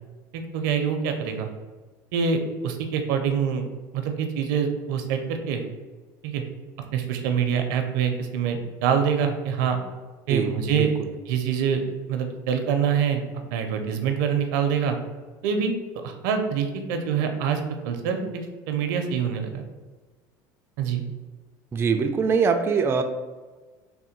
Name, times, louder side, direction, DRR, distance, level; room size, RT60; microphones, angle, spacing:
voice 1, 0.3-1.5 2.1-3.6 3.9-5.6 6.2-6.4 6.9-9.8 10.3-10.9 11.3-11.8 12.1-13.2 13.5-15.0 15.4-15.7 16.0-17.6 17.8-19.6 20.8-21.0, right 7 dB, 80° right, 6 dB, 0.5 m, -25 dB
voice 2, 10.3-11.1 21.7-23.0, right 5 dB, 25° right, 5 dB, 0.3 m, -23 dB
3.6 x 2.2 x 4.3 m, 1.3 s
supercardioid pair, 100°, 10 cm